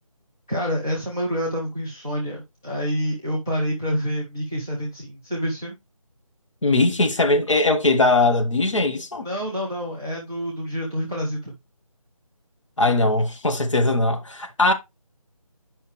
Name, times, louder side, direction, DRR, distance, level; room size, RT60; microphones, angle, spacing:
voice 1, 0.5-5.8 9.2-11.6, equal, 5° left, 0.5 m, -27 dB
voice 2, 6.6-9.2 12.8-14.7, left 2 dB, 55° left, 1.9 m, -20 dB
9.4 x 5.5 x 3.2 m
figure-of-eight pair, 160°, 19 cm